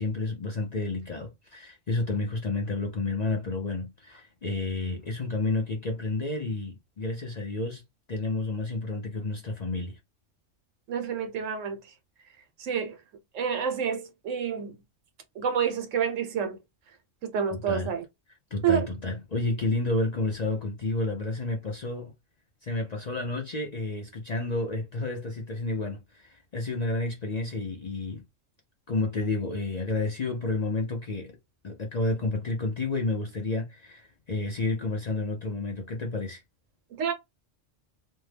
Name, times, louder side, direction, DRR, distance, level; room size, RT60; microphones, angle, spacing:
voice 1, 0.0-7.8 8.1-10.0 17.5-17.9 18.5-22.1 22.6-28.2 28.9-31.4 31.6-36.4, left 2 dB, 50° left, 0.5 m, -30 dB
voice 2, 10.9-11.8 12.6-13.0 13.3-14.7 15.4-16.6 17.2-18.0 18.6-18.9 36.9-37.1, right 7 dB, 80° right, 1.1 m, -28 dB
2.6 x 2.1 x 3.2 m
omnidirectional pair, 1.3 m